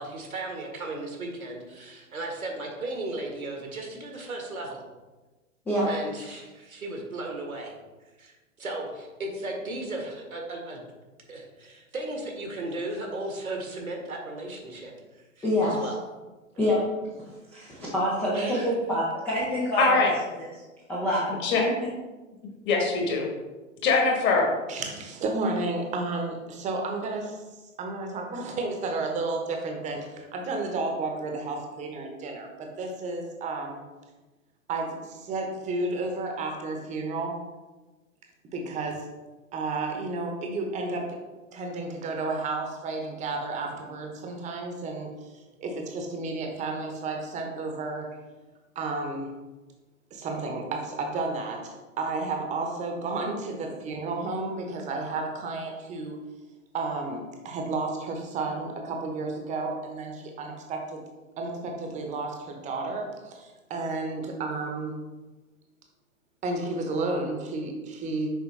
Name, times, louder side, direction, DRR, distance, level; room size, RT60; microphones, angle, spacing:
voice 1, 0.0-4.8 5.9-7.7 8.2-10.8 11.3-16.0 18.3-18.7, right 2 dB, 85° right, 1 dB, 1.7 m, -36 dB
voice 2, 15.4-15.8 16.6-16.8 17.5-19.9 20.9-21.3 21.6-21.7, equal, 5° left, -8 dB, 0.4 m, -26 dB
voice 3, 19.4-20.1 21.4-21.6 22.7-23.3 23.8-24.5, left 4 dB, 25° left, 1 dB, 1.3 m, -23 dB
voice 4, 24.7-27.4 27.8-33.8 34.7-37.3 38.5-39.1 39.5-41.2 41.5-45.1 45.6-48.1 48.7-49.3 50.1-56.2 56.7-61.0 61.4-65.0 66.4-68.3, right 3 dB, 15° right, 2 dB, 0.9 m, -32 dB
6.4 x 4.7 x 3.2 m, 1.2 s
figure-of-eight pair, 110°, 41 cm